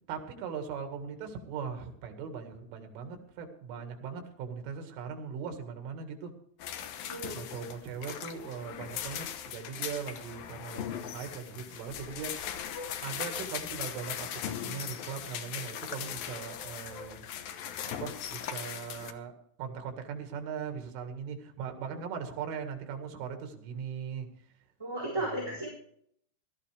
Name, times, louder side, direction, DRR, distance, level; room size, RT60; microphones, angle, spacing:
voice 1, 0.1-6.3 7.3-12.3 13.0-17.3 18.0-19.3 19.6-24.3 25.2-25.6, right 6 dB, 90° right, 5 dB, 4.5 m, -39 dB
sound 1, 6.6-19.1, left 9 dB, 75° left, 2.1 m, -39 dB
voice 2, 7.1-7.4 24.8-25.7, right 1 dB, 5° right, -4 dB, 3.9 m, -34 dB
18.0 x 13.5 x 3.4 m, 0.67 s
omnidirectional pair, 5.5 m